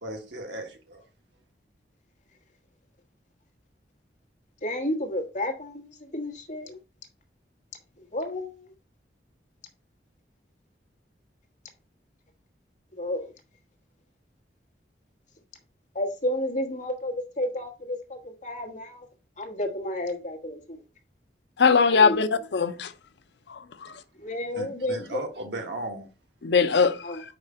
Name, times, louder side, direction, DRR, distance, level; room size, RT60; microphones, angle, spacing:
voice 1, 0.0-1.0 24.5-26.1, right 1 dB, 80° right, 1.6 m, -36 dB
voice 2, 4.6-6.8 8.1-8.6 13.0-13.3 15.9-19.1 19.4-20.8 21.9-22.2 24.2-25.2 27.0-27.2, left 1 dB, 45° left, 1.4 m, -31 dB
voice 3, 21.6-22.9 23.5-23.9 26.4-27.0, left 5 dB, 70° left, 0.6 m, -21 dB
5.1 x 4.8 x 4.2 m
head